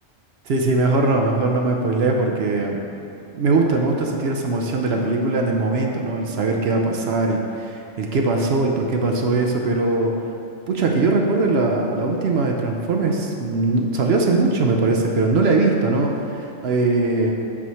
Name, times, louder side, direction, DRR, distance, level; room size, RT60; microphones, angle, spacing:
voice 1, 0.5-2.8 3.3-10.1 10.7-17.3, right 3 dB, 60° right, 1 dB, 0.8 m, -21 dB
8.3 x 3.1 x 5.6 m, 2.8 s
omnidirectional pair, 1.3 m